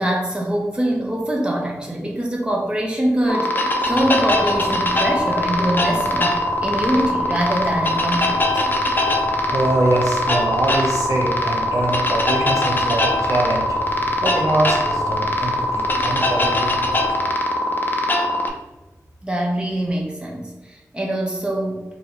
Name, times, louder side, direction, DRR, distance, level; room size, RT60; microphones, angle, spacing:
voice 1, 0.0-8.6 19.2-21.8, right 1 dB, 15° right, -2 dB, 0.8 m, -23 dB
sound 1, 3.3-18.5, left 1 dB, 35° left, 0.5 m, -21 dB
sound 2, 3.8-17.1, equal, 35° right, 1.5 m, -37 dB
voice 2, 9.5-13.8 14.2-17.3, right 2 dB, 70° right, -1 dB, 0.6 m, -23 dB
2.7 x 2.3 x 4.1 m, 1.1 s
wide cardioid pair, 65°, 6 cm